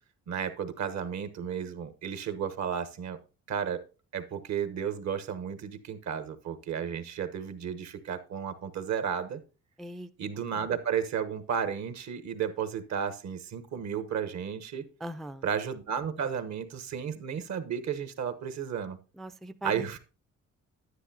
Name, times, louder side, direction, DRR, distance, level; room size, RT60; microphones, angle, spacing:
voice 1, 0.3-3.2 3.5-3.8 4.1-9.4 10.2-14.8 15.4-19.0 19.6-20.0, right 7 dB, 65° right, 1.2 m, -33 dB
voice 2, 9.8-10.1 15.0-15.4 19.2-20.0, right 1 dB, ahead, 0.4 m, -40 dB
9.8 x 9.8 x 2.8 m
cardioid pair, 90°, 30 cm